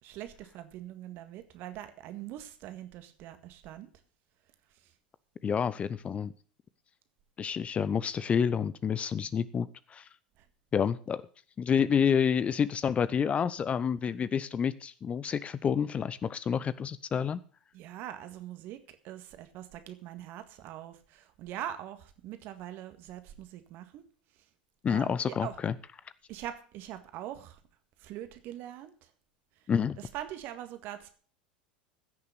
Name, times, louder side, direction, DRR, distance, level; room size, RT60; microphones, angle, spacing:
voice 1, 0.0-3.9 10.4-10.5 17.7-24.0 24.9-25.6 26.3-27.6 28.0-29.1 30.0-31.1, right 12 dB, 45° right, 9 dB, 1.8 m, -43 dB
voice 2, 5.4-6.3 7.4-10.1 10.7-11.2 11.6-17.4 24.8-25.7 29.7-30.0, left 7 dB, 25° left, 17 dB, 0.6 m, -29 dB
15.5 x 6.7 x 6.7 m, 0.41 s
figure-of-eight pair, 80°, 5 cm